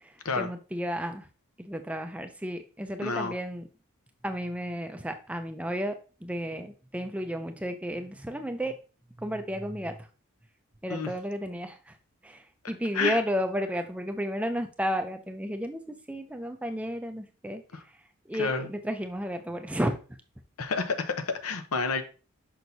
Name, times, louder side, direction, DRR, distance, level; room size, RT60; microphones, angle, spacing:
voice 1, 0.0-1.3 1.6-3.7 4.2-8.8 9.2-10.0 10.8-12.0 12.2-17.6 18.3-20.0, equal, 5° right, 0.4 m, -33 dB
voice 2, 3.0-3.3 10.9-11.1 12.9-13.2 17.7-17.8 18.3-18.7 20.6-22.0, left 4 dB, 85° left, 0.8 m, -29 dB
6.1 x 5.8 x 2.7 m
head